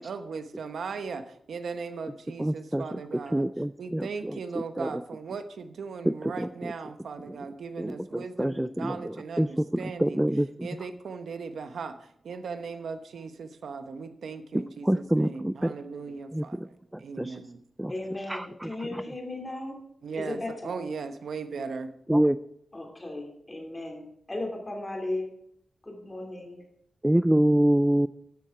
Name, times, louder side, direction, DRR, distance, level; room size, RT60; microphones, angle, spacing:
voice 1, 0.0-3.4 3.8-10.2 10.6-12.0 12.2-16.7 17.0-17.6 20.0-21.9, right 5 dB, 85° right, 9 dB, 0.9 m, -38 dB
voice 2, 2.4-3.0 3.3-4.4 4.8-5.0 6.1-6.7 7.2-7.4 7.8-10.7 14.5-15.7 16.3-16.7 16.9-17.4 17.8-17.9 18.3-19.0 22.1-22.4 27.0-28.1, right 1 dB, 5° right, 13 dB, 0.3 m, -26 dB
voice 3, 17.9-19.8 20.1-20.8 22.7-25.3 25.8-26.6, left 2 dB, 20° left, 1 dB, 3.1 m, -36 dB
13.0 x 7.6 x 4.8 m, 0.71 s
wide cardioid pair, 130°, 0 cm